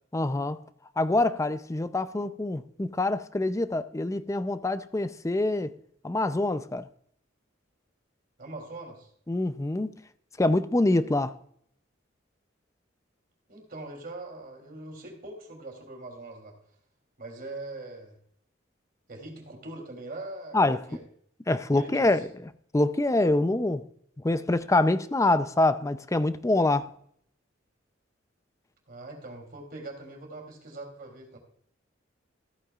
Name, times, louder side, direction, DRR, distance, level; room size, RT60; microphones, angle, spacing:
voice 1, 0.1-0.6 1.0-5.7 6.0-6.9 9.3-9.9 10.4-11.4 20.5-20.8 21.5-22.3 22.7-23.9 24.2-26.9, left 2 dB, 15° left, 0.5 m, -25 dB
voice 2, 8.4-9.1 13.5-16.5 17.2-18.1 19.1-21.0 21.7-22.2 28.9-31.4, right 2 dB, 45° right, 3.2 m, -42 dB
14.0 x 9.0 x 2.4 m
head